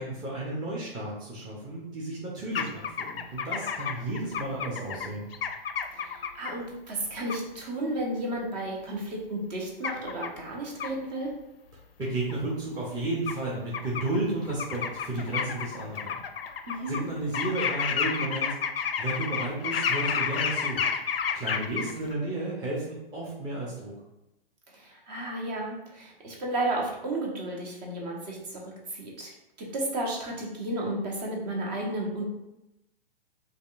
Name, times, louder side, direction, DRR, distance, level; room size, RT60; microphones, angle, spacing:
voice 1, 0.0-5.3 12.0-16.2 16.9-18.5 19.0-20.8 21.3-23.9, right 2 dB, 15° right, -6 dB, 0.7 m, -32 dB
sound 1, 2.6-6.5 7.3-7.4 9.8-10.3 10.8-10.9 12.3-12.4 13.3-13.4 13.7-14.2 14.5-17.0 17.3-22.1, left 7 dB, 75° left, 0.5 m, -31 dB
voice 2, 5.9-11.3 16.7-17.0 24.7-28.6 28.9-29.3 29.6-32.2, right 1 dB, 45° right, -1 dB, 1.2 m, -33 dB
5.1 x 2.4 x 2.5 m, 0.91 s
figure-of-eight pair, 110°, 30 cm